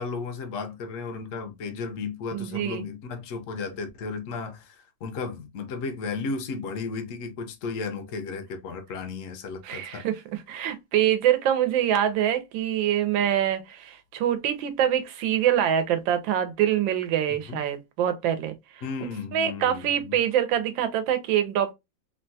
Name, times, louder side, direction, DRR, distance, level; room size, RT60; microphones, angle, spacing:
voice 1, 0.0-10.1 17.5-17.6 18.8-20.2, left 4 dB, 65° left, 0.8 m, -34 dB
voice 2, 2.3-2.9 9.6-18.5 19.3-21.7, right 10 dB, 85° right, 1.4 m, -25 dB
3.6 x 2.2 x 2.6 m
omnidirectional pair, 2.0 m